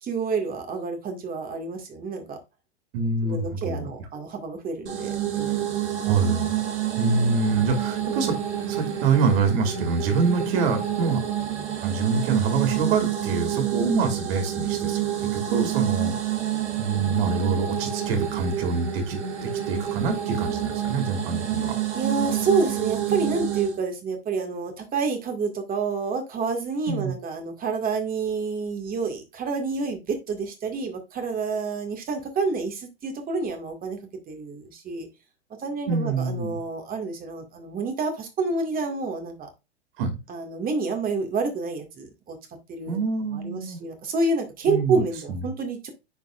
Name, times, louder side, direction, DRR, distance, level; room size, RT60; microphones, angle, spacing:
voice 1, 0.0-2.4 3.2-5.7 21.9-34.0 34.3-35.1 35.6-39.5 40.3-42.4 42.7-43.0 43.3-45.9, right 4 dB, 25° right, 2.0 m, -28 dB
voice 2, 2.9-4.1 6.0-6.6 7.0-8.4 8.7-11.2 11.8-15.0 15.3-16.1 16.8-21.8 26.9-27.1 35.9-36.6 40.0-40.2 42.9-43.8 44.6-45.0 45.3-45.5, right 4 dB, 55° right, 2.6 m, -25 dB
sound 1, 4.9-23.8, right 11 dB, 75° right, 2.3 m, -28 dB
10.0 x 4.6 x 2.5 m
hypercardioid pair, 105°, 34 cm